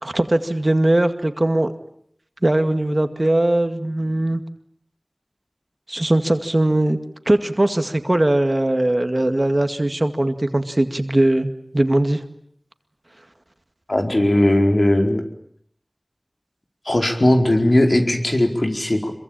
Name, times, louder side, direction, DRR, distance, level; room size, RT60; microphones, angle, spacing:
voice 1, 0.0-1.7 2.4-4.4 5.9-7.0 7.3-12.2, right 1 dB, 45° right, 8 dB, 2.1 m, -20 dB
voice 2, 13.9-15.2 16.8-19.1, left 1 dB, 60° left, 3 dB, 4.7 m, -18 dB
26.0 x 23.5 x 9.0 m, 0.68 s
wide cardioid pair, 45°, 0 cm